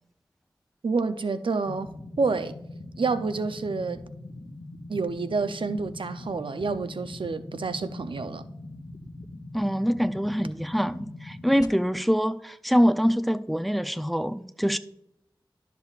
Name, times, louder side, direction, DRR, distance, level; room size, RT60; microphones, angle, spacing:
voice 1, 0.8-2.5 3.0-4.0 4.9-8.4, right 4 dB, 85° right, 0.5 m, -28 dB
sound 1, 1.7-11.7, left 2 dB, 45° left, 1.0 m, -42 dB
voice 2, 9.5-14.8, equal, ahead, 0.5 m, -24 dB
12.0 x 6.8 x 2.4 m
wide cardioid pair, 45°, 8 cm